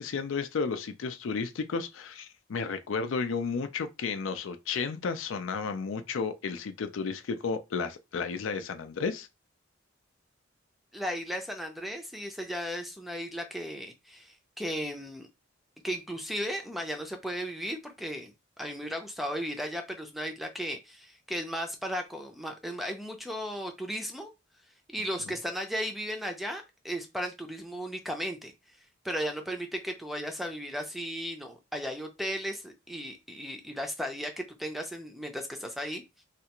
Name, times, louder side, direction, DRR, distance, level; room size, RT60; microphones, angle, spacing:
voice 1, 0.0-9.3, left 5 dB, 75° left, 0.4 m, -32 dB
voice 2, 10.9-15.3 15.8-18.3 18.6-24.3 24.9-28.5 29.0-36.0, equal, ahead, 0.5 m, -35 dB
3.3 x 2.4 x 2.9 m
head